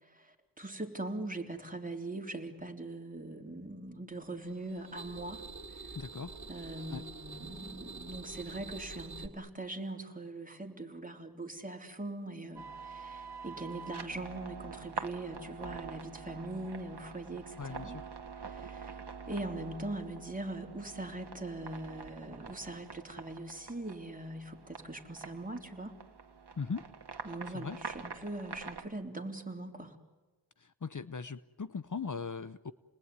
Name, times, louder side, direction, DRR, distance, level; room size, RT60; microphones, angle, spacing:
voice 1, 0.0-6.0 6.5-18.0 18.4-19.0 19.3-26.0 27.2-30.0, right 2 dB, 20° right, 3 dB, 3.7 m, -41 dB
sound 1, 4.4-9.3, right 3 dB, 45° right, 2.4 m, -46 dB
voice 2, 5.9-6.4 6.9-7.0 17.6-18.1 26.6-26.9 27.5-27.8 30.6-32.7, left 5 dB, 50° left, 14 dB, 0.8 m, -39 dB
sound 2, 12.6-28.9, right 5 dB, 85° right, 1.7 m, -46 dB
29.5 x 20.5 x 9.6 m, 1.2 s
wide cardioid pair, 50°, 40 cm